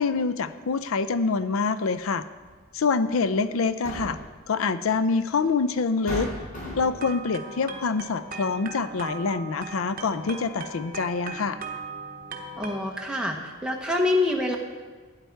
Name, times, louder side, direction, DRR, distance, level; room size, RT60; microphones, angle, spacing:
voice 1, 0.0-2.2 2.7-4.2 4.5-6.3 6.8-11.6, left 4 dB, 75° left, 13 dB, 0.5 m, -26 dB
sound 1, 2.4-2.6 3.6-4.4 5.4-5.5 6.1-7.1, left 1 dB, 40° left, 4.4 m, -34 dB
sound 2, 6.8-12.8, right 3 dB, 45° right, 1.1 m, -39 dB
voice 2, 12.6-14.6, left 2 dB, 5° right, -1 dB, 1.0 m, -26 dB
12.0 x 9.7 x 4.6 m, 1.4 s
head